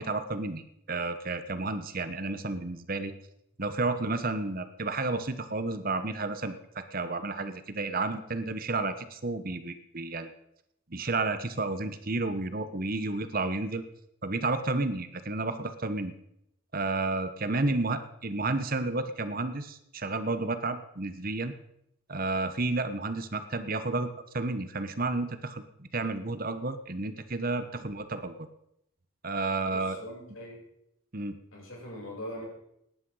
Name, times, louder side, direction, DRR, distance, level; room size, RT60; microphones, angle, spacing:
voice 1, 0.0-3.1 3.6-10.3 10.9-13.8 14.2-16.1 16.7-21.5 22.1-24.1 24.3-28.5 29.2-30.0 31.1-31.4, right 3 dB, 45° right, 10 dB, 1.1 m, -31 dB
voice 2, 17.5-17.8 27.6-27.8 29.6-30.7 31.5-32.4, left 1 dB, 70° left, -2 dB, 7.5 m, -42 dB
18.0 x 10.5 x 5.6 m, 0.79 s
head